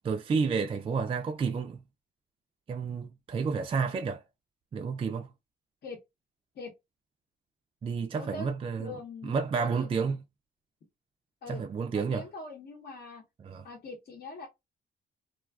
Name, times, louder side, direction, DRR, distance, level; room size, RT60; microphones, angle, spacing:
voice 1, 0.0-1.8 2.7-4.2 4.7-5.3 7.8-8.9 9.2-10.2 11.5-12.2 13.4-13.6, right 5 dB, 30° right, 0.3 m, -30 dB
voice 2, 8.1-8.5 8.8-9.9 11.4-13.2 13.6-14.5, left 3 dB, 55° left, 0.9 m, -43 dB
2.4 x 2.3 x 2.2 m
cardioid pair, 90°, 20 cm